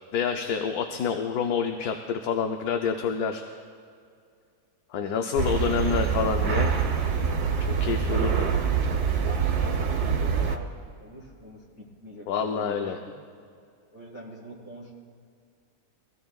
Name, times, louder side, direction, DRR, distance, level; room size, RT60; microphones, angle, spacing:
voice 1, 0.1-3.4 4.9-6.7 7.6-8.5 12.3-13.0, left 6 dB, 75° left, 4 dB, 1.2 m, -28 dB
sound 1, 5.4-10.6, right 6 dB, 85° right, 1.6 m, -25 dB
voice 2, 5.7-6.2 9.6-13.0 13.9-14.9, equal, 50° left, -5 dB, 4.0 m, -44 dB
23.5 x 16.0 x 2.4 m, 2.3 s
omnidirectional pair, 1.6 m